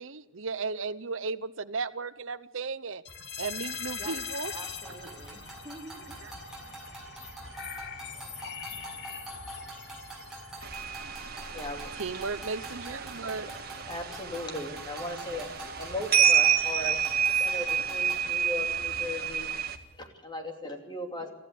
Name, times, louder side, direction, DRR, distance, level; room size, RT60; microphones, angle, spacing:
voice 1, 0.0-3.0 3.4-4.5 6.2-6.3 12.0-13.5, right 4 dB, 70° right, 12 dB, 0.8 m, -35 dB
sound 1, 3.0-20.1, left 6 dB, 55° left, 2.4 m, -45 dB
voice 2, 3.9-4.2 4.5-6.2, right 2 dB, 20° right, 0 dB, 3.8 m, -46 dB
sound 2, 4.4-18.2, right 1 dB, ahead, 6.9 m, -45 dB
sound 3, 10.6-19.8, right 8 dB, 50° right, 1.7 m, -28 dB
voice 3, 11.5-11.9 13.2-13.5 13.9-17.0 17.4-19.5 20.0-21.3, left 1 dB, 20° left, 4 dB, 2.9 m, -37 dB
24.0 x 14.5 x 8.4 m, 1.1 s
head